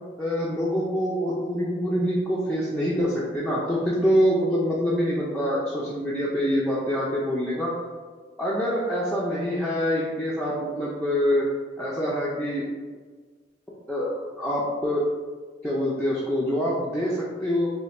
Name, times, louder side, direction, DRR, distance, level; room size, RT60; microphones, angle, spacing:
voice 1, 0.2-7.8 8.4-11.4 11.8-12.6 13.9-15.1 15.6-17.7, equal, 5° left, -8 dB, 0.4 m, -25 dB
3.2 x 2.2 x 4.0 m, 1.5 s
head